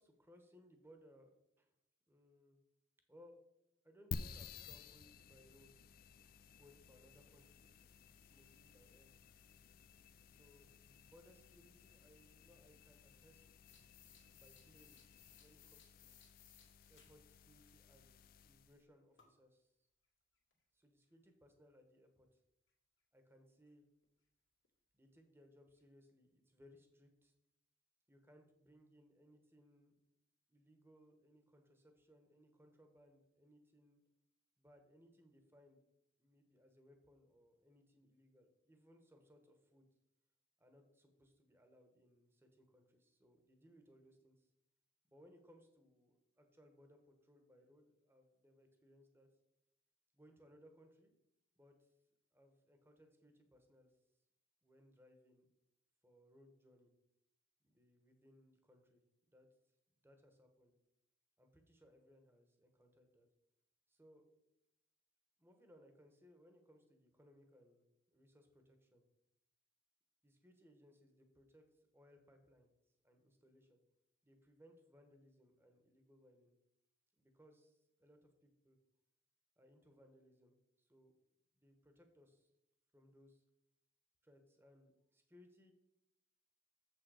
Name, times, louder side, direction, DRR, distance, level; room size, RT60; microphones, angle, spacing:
voice 1, 0.0-1.7 2.1-2.6 3.1-3.4 3.8-5.8 6.6-7.8 8.1-9.1 10.3-13.4 14.3-15.0 15.4-16.3 16.9-19.7 20.7-22.4 23.1-23.8 24.9-27.3 28.1-30.0 30.5-34.0 34.6-35.8 36.2-39.9 40.6-44.5 45.1-49.3 50.1-51.1 51.6-51.9 52.3-53.9 54.6-55.5 56.0-56.9 57.6-59.0 59.3-59.5 60.0-60.8 61.4-63.3 63.9-64.3 65.4-69.0 70.2-72.7 73.0-73.8 74.2-76.5 77.2-78.8 79.6-81.1 81.5-82.5 82.9-83.4 84.2-85.7, equal, 10° right, 5 dB, 1.0 m, -66 dB
sound 1, 4.1-18.8, left 5 dB, 50° left, 0.4 m, -54 dB
sound 2, 13.6-17.1 17.5-17.6 19.2-19.4 20.5-20.6 23.7-23.8 24.0-24.1 24.6-24.7 25.2-25.3 25.8-25.9, left 8 dB, 85° left, 1.9 m, -65 dB
7.4 x 6.3 x 4.8 m, 0.83 s
head